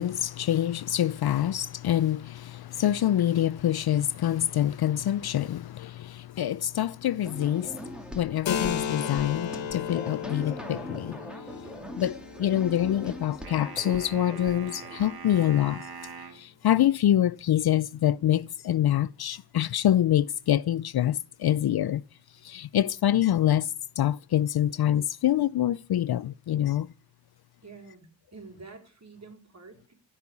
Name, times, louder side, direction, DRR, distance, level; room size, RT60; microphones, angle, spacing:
voice 1, 0.0-11.2 12.0-15.9 16.3-22.0 22.4-26.9, left 11 dB, 60° left, 0.5 m, -26 dB
sound 1, 7.2-15.6, left 1 dB, ahead, 2.4 m, -42 dB
Keyboard (musical), 8.5-15.8, left 7 dB, 90° left, 1.6 m, -36 dB
sound 2, 13.4-16.4, right 5 dB, 55° right, 3.1 m, -43 dB
voice 2, 27.6-29.9, right 4 dB, 35° right, 4.1 m, -48 dB
15.0 x 5.7 x 8.4 m
cardioid pair, 85°, 44 cm